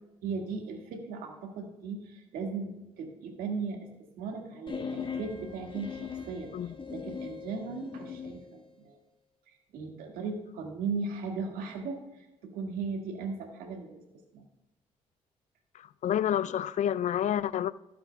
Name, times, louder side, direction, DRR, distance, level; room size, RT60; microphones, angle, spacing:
voice 1, 0.2-3.9 4.2-9.0 9.5-14.0 14.3-14.4, right 4 dB, 75° right, 1.9 m, -37 dB
sound 1, 4.7-8.4, left 5 dB, 35° left, 1.5 m, -39 dB
voice 2, 15.7-17.7, left 10 dB, 55° left, 0.4 m, -29 dB
15.5 x 7.8 x 2.3 m
hypercardioid pair, 50°, 15 cm